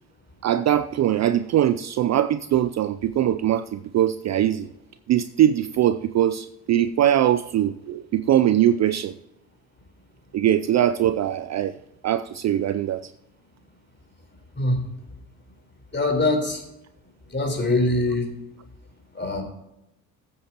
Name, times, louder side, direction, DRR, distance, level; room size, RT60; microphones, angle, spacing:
voice 1, 0.4-4.7 5.1-9.2 10.3-11.7 12.0-13.1, right 11 dB, 35° right, 12 dB, 0.5 m, -21 dB
voice 2, 15.9-16.6 17.3-18.3 19.1-19.4, left 2 dB, 25° left, 3 dB, 4.1 m, -23 dB
15.0 x 8.7 x 3.0 m, 0.86 s
hypercardioid pair, 60°, 46 cm